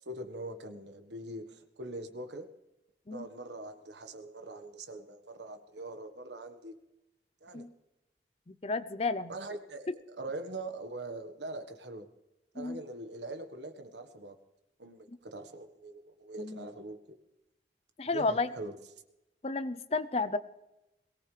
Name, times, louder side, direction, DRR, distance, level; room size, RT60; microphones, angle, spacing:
voice 1, 0.0-2.5 3.1-6.7 7.4-7.7 9.3-12.1 12.5-14.4 14.8-17.2 18.1-18.8, right 2 dB, 80° right, 7 dB, 1.5 m, -42 dB
voice 2, 8.5-9.3 12.6-12.8 16.4-16.6 18.0-18.5 19.4-20.4, left 3 dB, 35° left, 13 dB, 0.6 m, -32 dB
22.0 x 18.5 x 3.4 m, 0.94 s
head